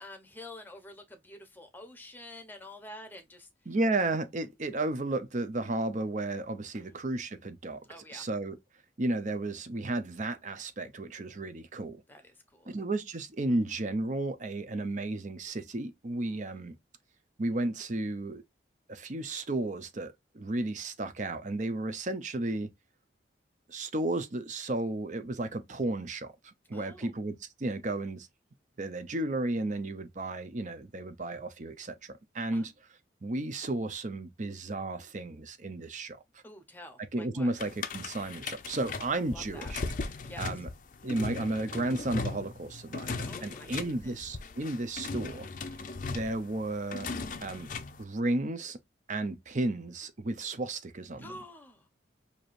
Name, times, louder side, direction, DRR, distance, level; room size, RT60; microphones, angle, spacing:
voice 1, 0.0-3.5 6.7-7.0 7.9-8.2 12.1-12.8 16.3-16.6 26.7-27.1 32.5-32.7 36.4-37.5 39.3-39.7 40.2-40.6 43.3-44.2 51.2-51.9, left 1 dB, 10° left, 0.8 m, -48 dB
voice 2, 3.7-7.8 8.1-8.6 9.0-12.0 12.7-16.8 17.4-18.4 18.9-22.7 23.7-28.3 28.8-32.7 33.2-36.2 37.0-39.8 40.4-40.7 41.0-45.5 46.0-47.1 47.4-47.7 48.0-48.8 49.1-51.3, right 2 dB, 40° right, 0.6 m, -33 dB
sound 1, 37.6-48.0, left 4 dB, 45° left, 0.5 m, -38 dB
4.7 x 2.8 x 2.5 m
head